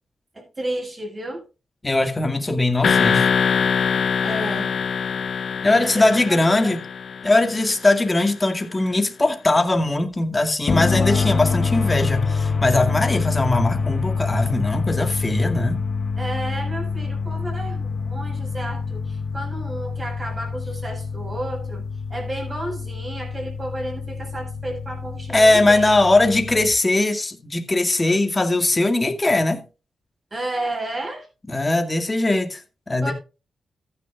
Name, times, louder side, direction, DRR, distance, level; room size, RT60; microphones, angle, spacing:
voice 1, 0.3-1.4 4.2-4.8 5.7-6.8 16.2-25.9 30.3-31.3 33.0-33.1, right 1 dB, 30° right, 7.5 m, -32 dB
voice 2, 1.8-3.3 5.6-6.8 7.2-15.8 25.3-29.6 31.5-32.6 32.9-33.1, left 2 dB, 25° left, 2.2 m, -20 dB
sound 1, 2.8-7.7, left 6 dB, 65° left, 0.4 m, -23 dB
sound 2, 10.7-26.7, left 5 dB, 50° left, 0.8 m, -26 dB
14.5 x 10.0 x 2.5 m
cardioid pair, 65°, 0 cm